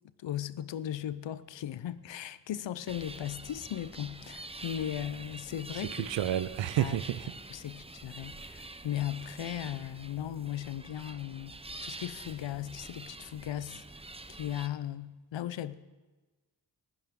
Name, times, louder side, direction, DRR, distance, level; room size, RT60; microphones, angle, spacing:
voice 1, 0.2-6.1 6.8-7.0 7.5-11.5 11.8-13.8 14.4-15.7, left 11 dB, 85° left, 0.6 m, -37 dB
sound 1, 2.9-14.7, right 2 dB, 15° right, 0.8 m, -46 dB
voice 2, 5.9-7.3, right 11 dB, 90° right, 0.6 m, -30 dB
19.5 x 12.0 x 3.7 m
cardioid pair, 45°, 43 cm